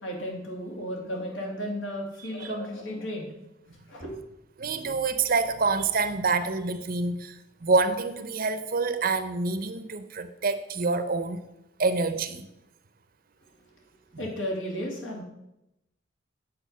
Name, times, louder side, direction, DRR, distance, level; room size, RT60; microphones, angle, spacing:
voice 1, 0.0-3.3 3.9-4.1 14.2-15.2, equal, 85° left, -1 dB, 2.6 m, -34 dB
voice 2, 4.6-7.4 7.6-11.4 11.8-12.5 14.1-14.2, right 3 dB, 50° right, 11 dB, 0.7 m, -27 dB
8.5 x 6.6 x 5.6 m, 0.88 s
head